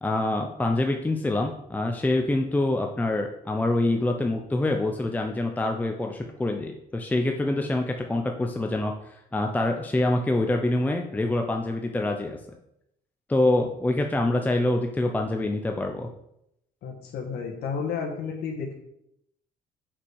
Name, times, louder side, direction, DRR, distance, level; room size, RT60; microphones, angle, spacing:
voice 1, 0.0-12.4 13.3-16.1, left 2 dB, 10° left, 3 dB, 0.7 m, -25 dB
voice 2, 16.8-18.7, left 5 dB, 70° left, 0 dB, 1.5 m, -32 dB
5.9 x 5.0 x 6.3 m, 0.78 s
cardioid pair, 110°, 17 cm